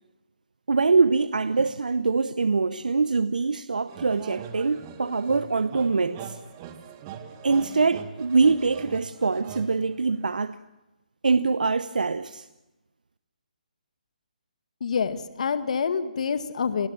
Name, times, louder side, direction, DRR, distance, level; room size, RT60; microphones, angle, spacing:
voice 1, 0.7-6.4 7.4-10.6 11.2-12.5, right 4 dB, 75° right, 0.8 m, -24 dB
sound 1, 3.9-10.4, right 8 dB, 30° right, 2.0 m, -42 dB
voice 2, 14.8-16.9, left 6 dB, 55° left, 1.8 m, -27 dB
28.5 x 19.5 x 7.2 m
figure-of-eight pair, 145°, 5 cm